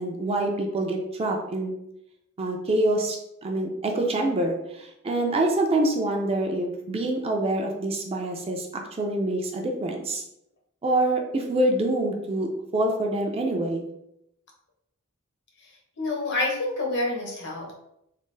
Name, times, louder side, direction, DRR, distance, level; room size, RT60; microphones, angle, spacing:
voice 1, 0.0-1.7 2.4-10.2 10.8-13.9, right 1 dB, 25° right, 2 dB, 0.4 m, -26 dB
voice 2, 16.0-17.7, left 2 dB, 55° left, -1 dB, 0.9 m, -27 dB
3.3 x 2.4 x 3.2 m, 0.81 s
head